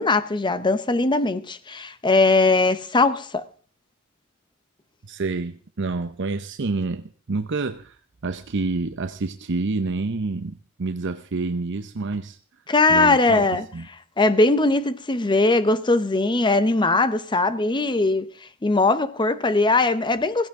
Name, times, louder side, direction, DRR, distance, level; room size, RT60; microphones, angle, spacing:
voice 1, 0.0-3.4 12.7-13.7 14.2-18.3 18.6-20.5, left 2 dB, 20° left, 0.8 m, -20 dB
voice 2, 5.1-8.0 8.2-12.4 12.9-13.9, right 3 dB, 60° right, 0.7 m, -28 dB
16.0 x 16.0 x 3.7 m
head